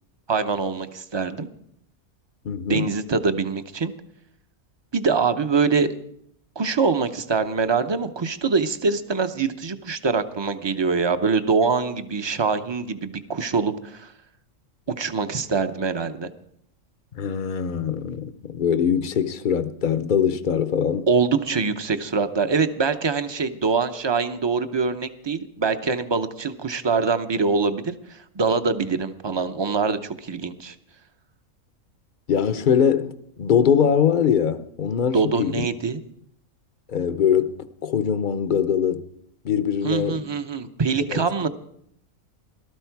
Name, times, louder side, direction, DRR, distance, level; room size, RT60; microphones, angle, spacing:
voice 1, 0.3-1.5 2.7-3.9 4.9-5.9 6.6-14.1 15.0-16.3 21.1-30.7 35.1-36.0 39.8-41.5, right 4 dB, 30° right, 0.5 m, -24 dB
voice 2, 2.4-2.9 17.2-21.1 32.3-35.7 36.9-39.1 39.4-40.2 41.1-41.2, left 7 dB, 45° left, 0.7 m, -22 dB
18.0 x 13.0 x 4.6 m
omnidirectional pair, 1.4 m